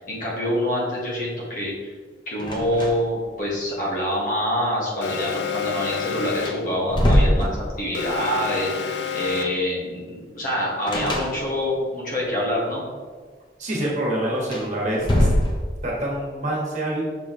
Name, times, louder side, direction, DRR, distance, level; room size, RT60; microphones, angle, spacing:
voice 1, 0.0-1.7 2.3-12.8, equal, 50° left, -5 dB, 1.8 m, -26 dB
sound 1, 2.4-3.2 3.5-3.6 5.9-6.0 6.4-8.1 10.9-11.8 14.4-16.0, left 1 dB, 25° left, 0.7 m, -23 dB
Alarm, 5.0-6.8 7.9-9.7, left 6 dB, 75° left, 0.4 m, -29 dB
voice 2, 13.6-15.3 15.8-17.0, right 1 dB, 40° right, -4 dB, 1.5 m, -26 dB
6.3 x 4.8 x 3.1 m, 1.5 s
head